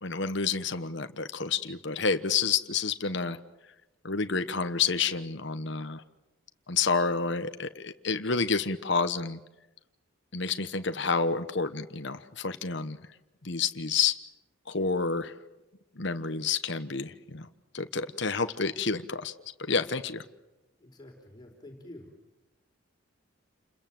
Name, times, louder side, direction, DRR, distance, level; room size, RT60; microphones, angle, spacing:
voice 1, 0.0-3.4 4.0-6.0 6.7-9.4 10.3-13.0 13.4-14.2 14.7-15.3 16.0-17.5 17.7-19.3 19.6-20.2, left 5 dB, 60° left, 9 dB, 1.2 m, -29 dB
voice 2, 20.8-22.1, left 1 dB, 20° left, 2 dB, 4.6 m, -48 dB
29.5 x 22.0 x 7.7 m, 0.98 s
head